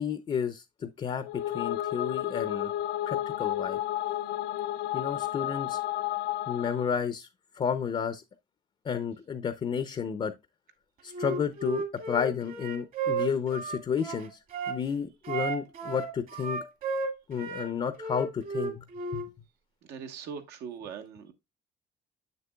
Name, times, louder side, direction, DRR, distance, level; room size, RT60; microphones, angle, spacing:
voice 1, 0.0-2.7 3.1-3.8 4.9-5.8 6.5-7.3 7.6-8.2 8.8-10.3 11.0-14.4 14.7-16.6 17.3-18.8 19.1-19.2, left 7 dB, 35° left, 0.5 m, -31 dB
sound 1, 1.2-6.9, left 13 dB, 80° left, 0.4 m, -32 dB
Wind instrument woodwind instrument, 11.1-14.8 15.2-17.7 18.0-19.3, right 4 dB, 55° right, 1.9 m, -33 dB
voice 2, 19.9-21.3, right 7 dB, 80° right, 1.2 m, -40 dB
7.2 x 6.8 x 2.2 m
cardioid pair, 110°, 17 cm